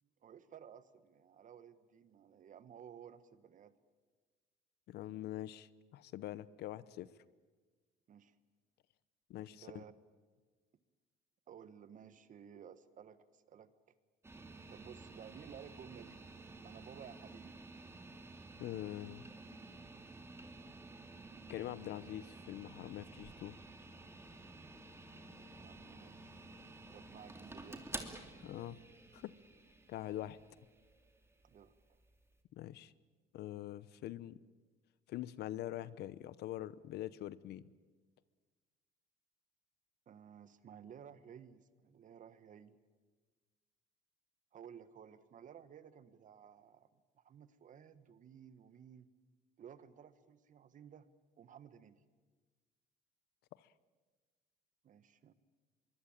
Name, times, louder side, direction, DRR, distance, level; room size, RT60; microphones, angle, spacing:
voice 1, 0.0-3.7 8.1-8.3 9.6-9.9 11.5-13.7 14.7-16.2 16.6-17.6 25.6-26.4 26.9-27.8 31.4-31.7 40.1-42.8 44.5-46.9 47.1-49.1 49.6-51.1 51.4-52.0 54.8-55.3, right 8 dB, 50° right, 13 dB, 1.6 m, -55 dB
voice 2, 4.9-7.1 9.3-9.8 18.6-19.3 21.5-23.6 28.4-28.8 29.1-29.3 29.9-30.4 32.5-32.9 33.3-34.4 35.1-37.7 53.6-53.7, left 13 dB, 75° left, 18 dB, 0.9 m, -44 dB
sound 1, 14.2-32.3, right 2 dB, 15° right, 2.9 m, -52 dB
24.5 x 23.0 x 9.0 m, 1.4 s
cardioid pair, 110°, 17 cm